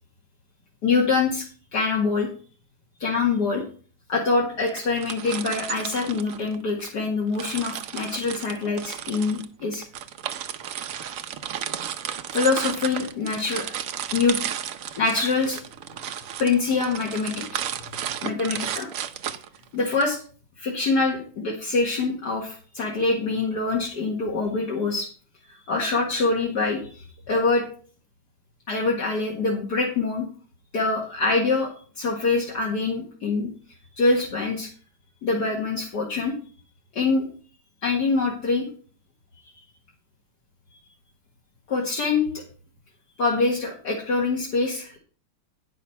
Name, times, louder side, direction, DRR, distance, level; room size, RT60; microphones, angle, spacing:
voice 1, 0.8-1.4 1.7-2.3 3.0-3.6 4.1-9.8 12.3-13.7 14.1-14.4 15.0-15.6 16.4-17.6 18.2-18.9 19.7-20.2 20.6-25.1 25.5-27.6 28.7-30.2 30.7-31.7 32.0-33.5 34.0-34.7 35.2-36.4 36.9-37.2 37.8-38.7 41.7-42.3 43.2-45.0, left 3 dB, 60° left, -3 dB, 2.2 m, -24 dB
sound 1, 4.7-6.9 7.3-20.0, right 9 dB, 65° right, 0.8 m, -33 dB
9.6 x 6.3 x 5.7 m, 0.41 s
omnidirectional pair, 2.0 m